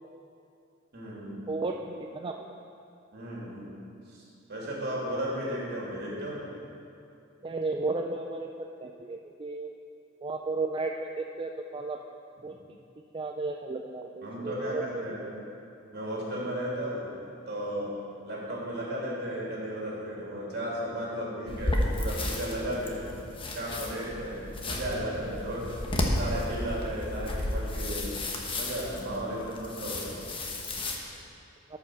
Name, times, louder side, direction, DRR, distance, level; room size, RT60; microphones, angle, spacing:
voice 1, 0.9-1.5 3.1-3.7 4.1-4.2 4.5-6.4 14.2-15.3 15.9-17.1 17.5-17.9 18.2-23.0 23.5-25.7 26.2-28.1 28.5-30.5, equal, 55° right, -5 dB, 3.0 m, -34 dB
voice 2, 1.5-2.4 7.4-8.5 8.8-9.8 10.2-12.0 12.4-12.6 13.1-15.6, right 3 dB, 25° right, 2 dB, 0.4 m, -34 dB
sound 1, 21.5-31.0, left 1 dB, 25° left, 1.1 m, -33 dB
13.0 x 5.6 x 6.4 m, 2.6 s
head